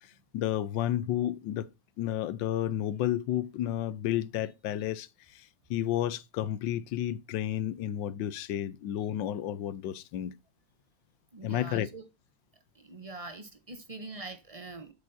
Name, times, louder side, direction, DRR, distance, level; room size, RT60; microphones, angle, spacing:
voice 1, 0.3-1.7 2.0-5.1 5.3-10.3 11.4-11.9, left 11 dB, 85° left, 1.4 m, -31 dB
voice 2, 11.3-12.0 12.7-14.9, right 3 dB, 35° right, 0.6 m, -43 dB
7.9 x 7.2 x 2.6 m
omnidirectional pair, 2.0 m